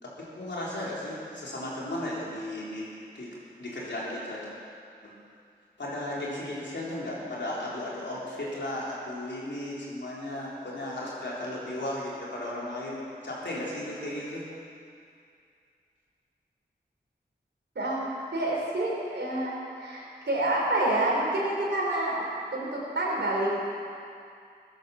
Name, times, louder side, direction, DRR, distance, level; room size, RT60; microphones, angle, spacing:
voice 1, 0.0-2.9 3.1-3.3 3.6-4.4 5.8-14.4, left 1 dB, 90° left, -6 dB, 3.7 m, -35 dB
voice 2, 18.3-22.2 22.5-23.5, right 1 dB, 90° right, -4 dB, 3.8 m, -28 dB
15.5 x 10.5 x 7.0 m, 2.4 s
cardioid pair, 40°, 18 cm